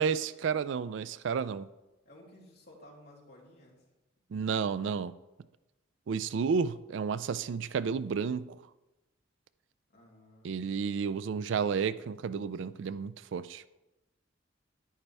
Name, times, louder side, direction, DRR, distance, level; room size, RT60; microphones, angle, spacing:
voice 1, 0.0-1.7 4.3-5.1 6.1-8.6 10.4-13.7, right 6 dB, 65° right, 16 dB, 0.3 m, -31 dB
voice 2, 2.0-3.8 9.9-10.6, left 1 dB, 55° left, -3 dB, 2.7 m, -55 dB
10.0 x 9.7 x 3.4 m, 1.0 s
head